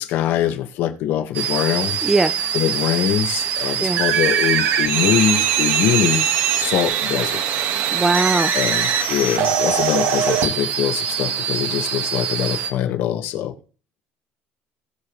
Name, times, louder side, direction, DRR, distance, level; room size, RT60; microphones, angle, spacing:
voice 1, 0.0-2.0 2.5-6.3 6.6-7.4 8.5-13.5, left 11 dB, 65° left, 1.5 m, -23 dB
sound 1, 1.3-12.7, right 8 dB, 65° right, 1.6 m, -22 dB
voice 2, 2.0-2.3 3.8-4.0 7.9-8.5, right 3 dB, 10° right, 0.5 m, -19 dB
19.0 x 6.9 x 3.2 m
cardioid pair, 160°, 4 cm